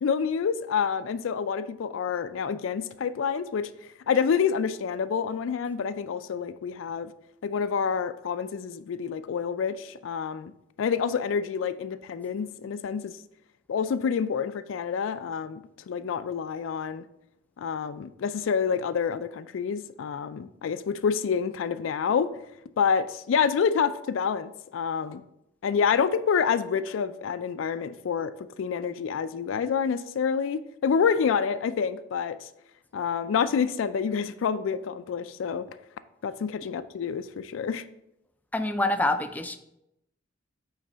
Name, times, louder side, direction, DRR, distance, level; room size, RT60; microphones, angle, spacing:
voice 1, 0.0-3.7 4.1-7.1 7.4-10.5 10.8-13.2 13.7-17.0 17.6-22.3 22.8-25.2 25.6-32.5 32.9-35.7 36.2-37.8, left 6 dB, 85° left, 12 dB, 0.4 m, -28 dB
voice 2, 38.5-39.6, left 2 dB, 10° left, 8 dB, 0.4 m, -26 dB
8.8 x 3.2 x 3.9 m, 0.82 s
head